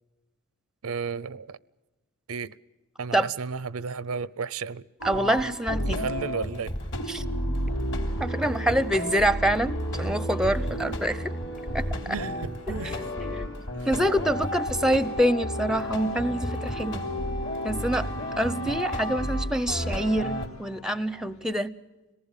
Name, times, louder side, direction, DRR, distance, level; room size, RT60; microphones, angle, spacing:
voice 1, 0.8-1.6 2.3-2.5 3.0-4.8 5.9-6.7 12.1-13.0 13.8-13.9, right 5 dB, 80° right, 20 dB, 0.6 m, -33 dB
sound 1, 5.0-20.5, equal, 55° left, 3.2 m, -31 dB
voice 2, 5.0-6.1 7.1-7.2 8.2-11.3 11.7-11.8 12.8-13.6 13.9-17.0 17.6-18.1 18.4-21.8, right 1 dB, 5° right, 15 dB, 0.6 m, -26 dB
sound 2, 7.6-21.5, left 2 dB, 80° left, 2.9 m, -53 dB
25.5 x 19.0 x 7.3 m, 1.1 s
head